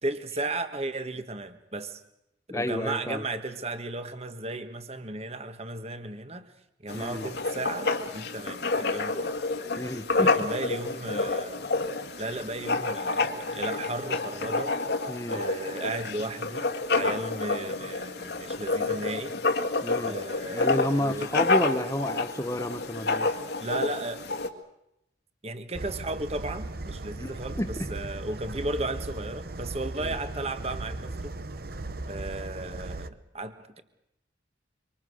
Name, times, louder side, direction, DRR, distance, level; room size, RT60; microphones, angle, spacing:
voice 1, 0.0-2.0 2.5-6.5 6.8-9.3 10.2-11.6 12.2-14.8 15.3-19.4 20.0-21.3 23.6-24.2 25.4-31.3 32.1-33.8, right 2 dB, 35° right, 9 dB, 1.5 m, -35 dB
voice 2, 2.5-3.2 6.9-7.3 9.8-10.3 15.1-15.4 19.8-20.1 20.5-23.3 27.2-27.9 30.0-30.2, left 1 dB, 15° left, 10 dB, 1.1 m, -30 dB
Writing, 6.9-24.5, left 3 dB, 60° left, 1.9 m, -29 dB
sound 1, 25.7-33.1, right 2 dB, 55° right, 1.0 m, -37 dB
25.5 x 25.5 x 6.4 m, 0.83 s
head